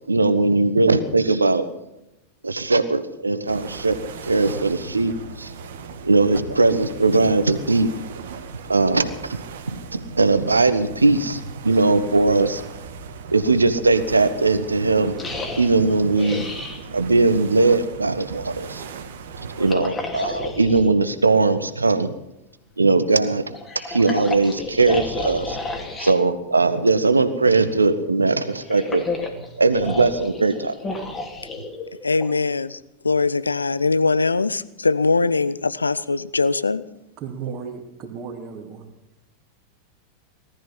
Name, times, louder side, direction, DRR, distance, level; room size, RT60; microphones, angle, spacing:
voice 1, 0.1-1.7 2.4-5.5 6.0-7.9 8.7-9.4 9.7-12.6 13.3-15.2 15.6-16.6 16.9-18.9 19.4-22.1 22.8-25.6 26.0-29.0 29.3-30.7, right 3 dB, 80° right, 1.2 m, -20 dB
sound 1, 3.5-19.7, right 5 dB, 60° right, 1.8 m, -38 dB
sound 2, 15.2-16.8 19.5-20.9 23.5-26.2 28.4-32.3, left 2 dB, 20° left, 2.6 m, -31 dB
voice 2, 32.0-32.8 33.0-36.8, left 3 dB, 80° left, 0.7 m, -21 dB
voice 3, 37.2-38.9, right 6 dB, 35° right, 2.6 m, -34 dB
18.5 x 13.5 x 5.7 m
figure-of-eight pair, 90°, 0 cm